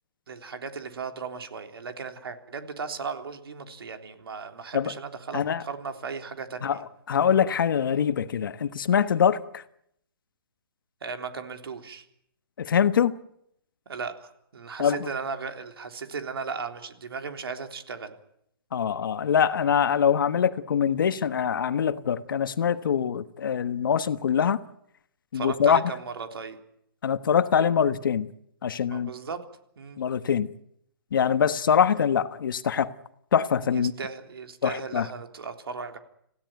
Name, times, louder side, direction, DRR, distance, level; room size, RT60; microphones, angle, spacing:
voice 1, 0.3-6.8 11.0-12.1 13.9-18.1 25.3-26.6 28.9-29.4 29.8-30.0 33.7-36.0, right 5 dB, 80° right, 3.6 m, -36 dB
voice 2, 7.1-9.6 12.6-13.1 14.8-15.1 18.7-24.6 25.3-25.8 27.0-28.3 28.6-29.1 30.0-30.5 31.1-32.9 33.3-33.9 34.6-35.1, left 7 dB, 60° left, 1.3 m, -23 dB
27.0 x 16.5 x 9.2 m
hypercardioid pair, 170°, 13 cm